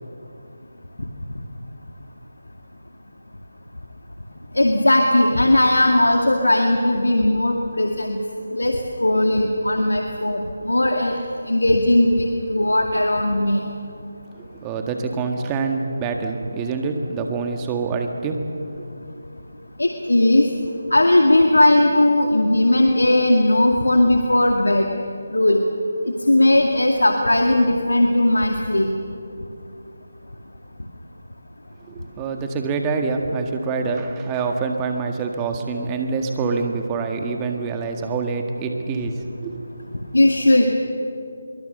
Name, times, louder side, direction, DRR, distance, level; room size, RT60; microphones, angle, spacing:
voice 1, 4.5-8.2 8.5-11.1 11.4-13.6 19.8-20.5 20.9-24.9 25.3-25.6 26.3-28.9 40.1-40.8, left 1 dB, 90° left, 2 dB, 2.1 m, -18 dB
voice 2, 14.4-18.8 31.9-39.9, right 4 dB, 15° right, 4 dB, 1.8 m, -26 dB
24.5 x 23.0 x 6.8 m, 2.7 s
figure-of-eight pair, 160°, 0 cm